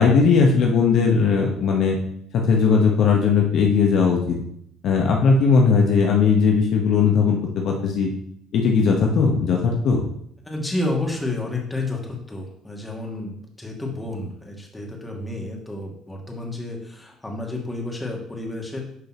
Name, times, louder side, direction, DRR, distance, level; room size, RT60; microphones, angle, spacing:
voice 1, 0.0-2.0 2.3-4.4 4.8-7.4 7.6-8.1 8.5-10.0, left 5 dB, 60° left, 1 dB, 1.3 m, -18 dB
voice 2, 10.4-18.8, left 2 dB, 15° left, -1 dB, 2.4 m, -30 dB
9.8 x 5.3 x 3.1 m, 0.70 s
supercardioid pair, 75°, 0 cm